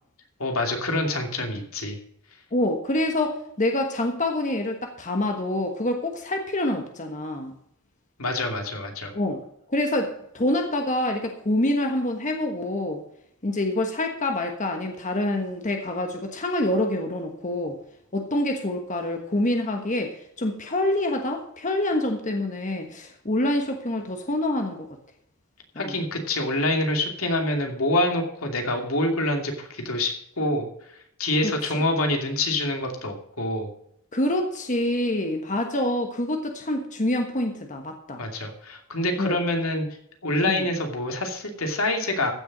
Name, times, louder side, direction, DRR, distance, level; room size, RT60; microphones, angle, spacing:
voice 1, 0.4-2.0 8.2-9.1 25.8-30.7 31.2-33.7 38.2-39.9 40.2-42.3, left 1 dB, 80° left, 3 dB, 2.7 m, -26 dB
voice 2, 2.5-7.6 9.1-9.4 9.7-13.0 13.4-17.8 18.1-24.9 25.7-26.0 31.4-31.8 34.1-38.2 39.2-39.4 40.5-40.7, left 1 dB, 35° left, 4 dB, 1.3 m, -26 dB
15.0 x 6.9 x 6.1 m, 0.73 s
head